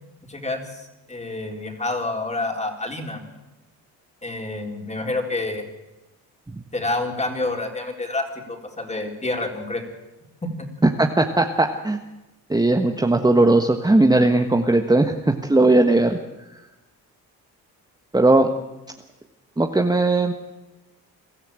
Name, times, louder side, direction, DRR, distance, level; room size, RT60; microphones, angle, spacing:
voice 1, 0.3-3.2 4.2-5.6 6.7-9.8 10.4-10.7, left 2 dB, 20° left, 3 dB, 4.0 m, -28 dB
voice 2, 11.0-12.0 12.5-16.2 18.1-18.5 19.6-20.3, right 2 dB, 10° right, 4 dB, 1.3 m, -18 dB
22.5 x 13.0 x 9.0 m, 1.0 s
cardioid pair, 80°, 38 cm